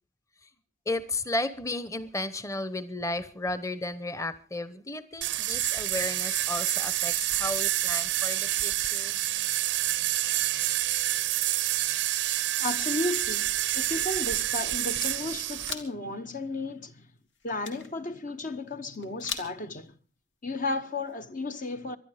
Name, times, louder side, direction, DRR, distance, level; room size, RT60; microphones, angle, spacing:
voice 1, 0.9-9.2, left 2 dB, 15° left, 1.0 m, -34 dB
sound 1, 2.0-21.2, left 5 dB, 85° left, 2.2 m, -49 dB
sound 2, 5.2-15.7, right 14 dB, 85° right, 0.7 m, -28 dB
voice 2, 12.6-17.1 17.4-20.0 20.4-22.0, left 2 dB, 45° left, 0.9 m, -34 dB
24.0 x 11.0 x 5.0 m
head